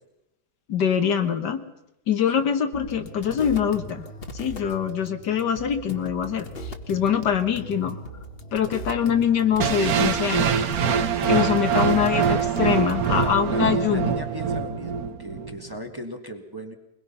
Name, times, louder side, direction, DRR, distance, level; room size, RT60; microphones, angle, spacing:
voice 1, 0.7-1.6 2.1-4.0 4.3-6.5 6.9-8.0 8.5-10.6 11.3-14.1, left 8 dB, 75° left, 8 dB, 2.0 m, -24 dB
sound 1, 2.7-13.4, equal, 35° left, 1.5 m, -39 dB
sound 2, 9.6-15.6, right 6 dB, 60° right, 1.4 m, -24 dB
voice 2, 11.8-12.2 13.2-16.7, equal, 15° right, 4 dB, 1.5 m, -36 dB
22.5 x 21.0 x 5.6 m, 0.85 s
omnidirectional pair, 1.8 m